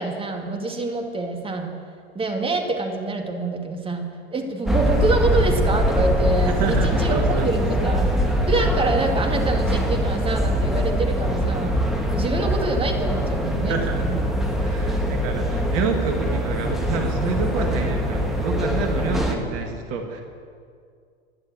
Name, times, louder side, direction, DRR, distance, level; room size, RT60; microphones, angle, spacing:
voice 1, 0.0-1.7 2.1-8.1 8.5-11.7 12.1-14.2, right 2 dB, 15° right, 3 dB, 2.3 m, -26 dB
sound 1, 4.6-19.3, equal, ahead, 2.2 m, -23 dB
voice 2, 6.4-7.9 8.2-8.3 13.7-14.1 14.6-20.2, right 4 dB, 45° right, 4 dB, 1.9 m, -28 dB
16.5 x 11.5 x 7.7 m, 2.2 s
figure-of-eight pair, 90°, 33 cm